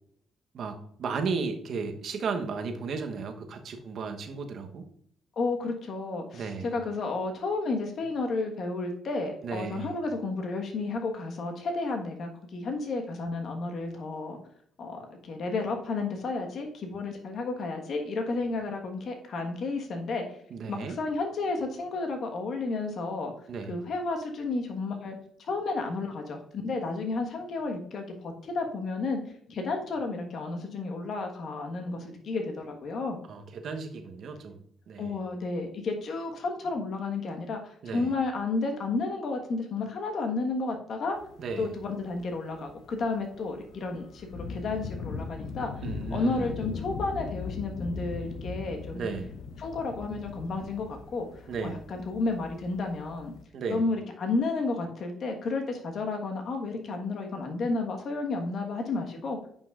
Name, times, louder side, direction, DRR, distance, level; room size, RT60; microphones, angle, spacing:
voice 1, 0.5-4.9 6.3-6.7 9.4-10.0 20.5-21.0 23.5-23.8 33.3-34.6 34.9-35.1 37.8-38.1 41.4-41.7 45.8-46.5 48.9-49.3 51.5-51.8 53.5-53.8, right 5 dB, 65° right, 5 dB, 1.0 m, -34 dB
voice 2, 5.4-14.4 14.8-20.4 20.7-23.3 23.7-29.2 29.5-33.2 35.0-41.2 41.6-45.8 46.1-49.1 49.6-53.3 53.7-59.4, left 3 dB, 60° left, 3 dB, 1.4 m, -32 dB
sound 1, 41.2-53.4, left 5 dB, 80° left, 0.6 m, -40 dB
8.5 x 5.5 x 2.5 m, 0.66 s
cardioid pair, 90°, 0 cm